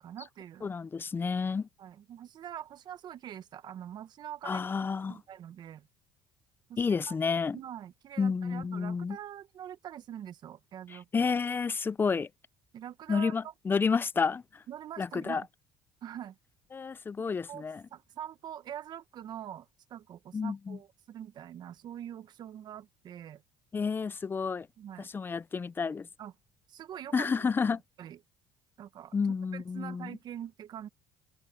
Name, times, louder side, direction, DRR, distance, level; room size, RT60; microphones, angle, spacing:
voice 1, 0.0-0.7 1.8-4.7 5.1-5.9 6.7-6.8 7.1-7.2 7.5-11.3 12.7-13.5 14.7-15.5 16.0-16.4 17.5-17.6 17.9-23.4 24.8-25.1 26.2-26.3 26.7-27.5 28.0-28.2 28.8-29.2 29.5-30.9, right 10 dB, 55° right, 1.3 m, -44 dB
voice 2, 0.6-1.7 4.4-5.2 6.8-7.6 8.2-9.2 10.9-12.3 13.1-14.6 15.0-15.4 16.7-17.8 20.3-20.8 23.7-24.7 25.0-26.1 27.1-27.8 29.1-30.1, left 5 dB, 25° left, 0.5 m, -30 dB
supercardioid pair, 95°, 9 cm